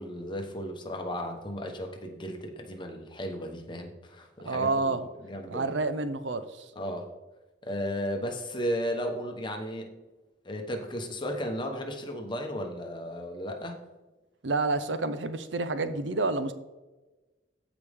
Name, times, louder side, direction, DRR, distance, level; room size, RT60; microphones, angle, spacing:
voice 1, 0.0-5.0 5.2-5.7 6.7-7.1 7.6-10.0 10.4-13.8, equal, 25° left, 3 dB, 1.1 m, -34 dB
voice 2, 4.5-5.0 5.5-6.7 14.4-16.5, right 3 dB, 70° right, 11 dB, 0.7 m, -29 dB
15.0 x 5.1 x 3.6 m, 1.1 s
head